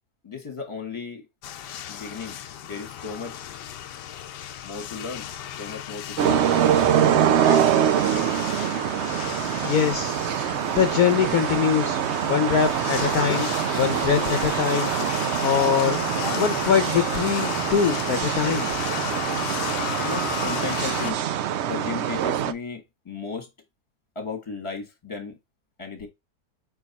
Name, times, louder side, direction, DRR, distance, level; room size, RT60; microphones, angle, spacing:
voice 1, 0.2-1.3 1.9-2.4 2.6-3.4 4.6-5.3 5.6-6.4 6.8-7.7 20.0-21.2 21.7-23.5 24.1-25.4 25.8-26.1, left 5 dB, 20° left, 1.5 m, -35 dB
sound 1, 1.4-21.1, left 10 dB, 90° left, 1.3 m, -34 dB
sound 2, 6.2-22.5, right 10 dB, 85° right, 0.6 m, -24 dB
voice 2, 9.6-10.2 10.8-12.0 12.3-14.9 15.4-16.0 16.3-18.7, left 8 dB, 65° left, 1.2 m, -23 dB
4.9 x 4.7 x 4.1 m
omnidirectional pair, 1.8 m